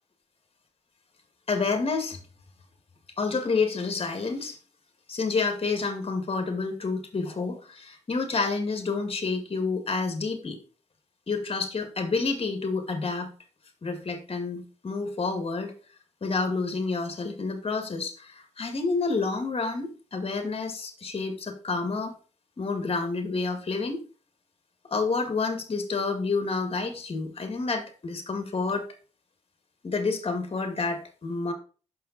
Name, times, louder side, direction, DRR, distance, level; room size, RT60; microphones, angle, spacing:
voice 1, 1.5-2.2 3.2-4.6 5.1-10.6 11.3-13.3 13.8-15.7 16.2-22.1 22.6-24.0 24.9-28.9 29.8-31.5, left 4 dB, 50° left, 6 dB, 1.9 m, -29 dB
6.3 x 5.7 x 4.1 m, 0.37 s
cardioid pair, 55°, 13 cm